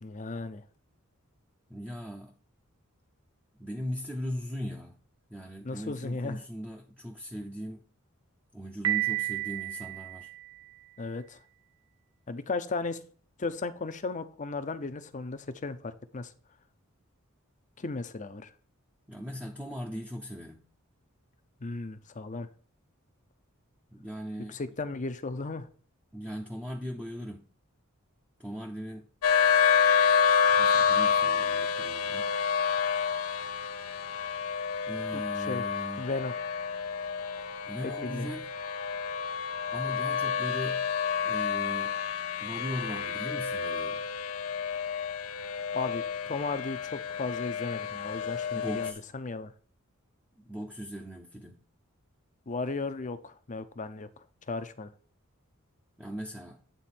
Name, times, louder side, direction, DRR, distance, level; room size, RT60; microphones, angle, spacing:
voice 1, 0.0-0.6 5.6-6.4 11.0-11.4 12.3-13.0 13.4-16.3 17.8-18.5 21.6-22.5 24.5-25.7 35.1-35.6 36.0-36.3 38.0-38.3 45.7-49.5 52.5-54.1 54.5-54.9, left 3 dB, 35° left, 0.6 m, -35 dB
voice 2, 1.7-2.3 3.6-5.0 5.3-7.8 8.5-10.3 19.1-20.6 23.9-24.6 26.1-27.5 28.4-29.1 30.6-32.3 34.9-36.1 37.7-38.5 39.7-40.9 41.2-42.0 42.4-44.0 48.5-49.0 50.4-51.6 56.0-56.6, equal, 10° right, 0.7 m, -39 dB
Piano, 8.8-10.8, right 16 dB, 75° right, 0.9 m, -32 dB
sound 1, 29.2-48.9, left 6 dB, 85° left, 0.6 m, -29 dB
9.2 x 3.8 x 4.3 m
head